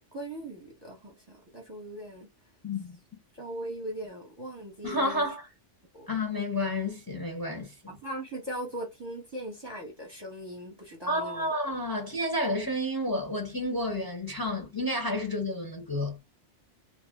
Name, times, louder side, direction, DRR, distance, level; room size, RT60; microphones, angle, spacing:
voice 1, 0.1-2.3 3.3-5.3 5.9-6.1 7.9-11.5, right 1 dB, 25° right, 0.9 m, -39 dB
voice 2, 2.6-3.0 4.8-5.5 6.1-7.7 11.1-16.2, left 1 dB, 20° left, 0.8 m, -30 dB
2.8 x 2.1 x 3.5 m
omnidirectional pair, 1.2 m